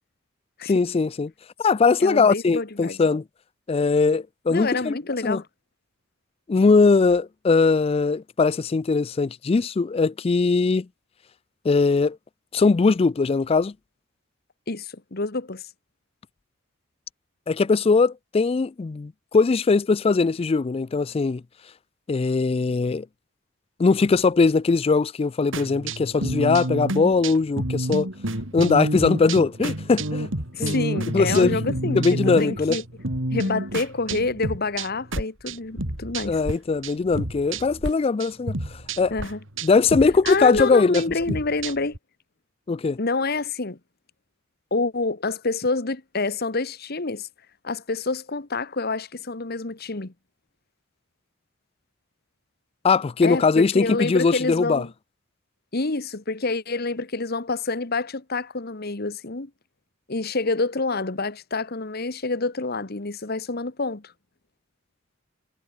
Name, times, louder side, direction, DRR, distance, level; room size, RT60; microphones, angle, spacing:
voice 1, 0.6-1.3 1.6-3.2 3.7-5.0 5.2-5.4 6.5-10.9 11.6-12.2 12.5-13.7 17.5-21.4 22.1-23.1 23.8-28.1 28.5-30.3 30.6-30.7 31.1-31.6 31.9-32.8 36.2-38.6 39.0-39.1 39.6-41.0 42.7-43.0 52.8-54.8, left 4 dB, 30° left, 0.3 m, -20 dB
voice 2, 2.0-3.0 4.5-5.5 14.7-15.6 30.5-32.8 33.3-36.4 39.1-39.4 40.2-42.0 43.0-43.8 44.7-47.3 47.6-50.1 53.2-54.9 55.7-59.5 60.1-64.0, left 3 dB, 50° left, 1.4 m, -27 dB
sound 1, 25.5-36.6 36.8-37.9 38.2-42.0, right 1 dB, 70° right, 4.0 m, -29 dB
head